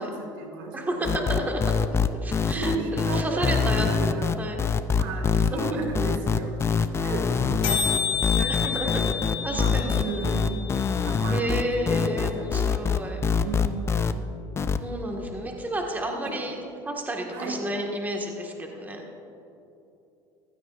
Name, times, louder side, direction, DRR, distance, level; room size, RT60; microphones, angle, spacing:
voice 1, 0.0-1.4 2.4-4.6 4.9-6.5 7.0-10.7 11.0-12.9 13.2-14.3 16.2-16.3 17.3-17.6, right 3 dB, 85° right, 3 dB, 2.0 m, -35 dB
voice 2, 0.7-1.6 2.2-4.6 5.3-5.8 8.5-9.0 9.4-10.0 11.3-13.2 14.8-16.6 16.8-19.0, right 1 dB, 15° right, 1 dB, 1.7 m, -31 dB
sound 1, 1.0-14.1 14.6-14.8, left 6 dB, 25° left, 0.5 m, -24 dB
sound 2, 5.6-5.7 5.8-5.9 6.1-6.3 6.6-6.7 6.9-7.1 7.4-7.5 7.6-11.6, left 7 dB, 65° left, 2.8 m, -30 dB
15.5 x 12.5 x 2.5 m, 2.9 s
supercardioid pair, 95°, 11 cm